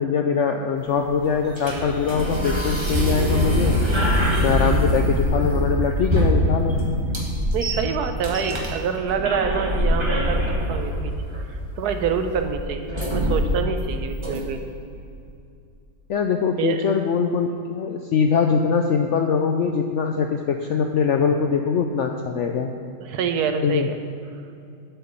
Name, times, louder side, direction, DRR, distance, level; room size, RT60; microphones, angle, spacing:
voice 1, 0.0-3.8 4.4-6.8 16.1-22.7 23.6-23.9, left 6 dB, 75° left, 4 dB, 0.6 m, -22 dB
sound 1, 0.8-14.8, equal, 20° right, 1.3 m, -24 dB
voice 2, 7.5-10.4 10.7-11.1 11.5-14.6 16.6-16.9 23.0-24.0, right 6 dB, 75° right, 7 dB, 1.2 m, -26 dB
8.4 x 5.8 x 6.8 m, 2.5 s
omnidirectional pair, 1.7 m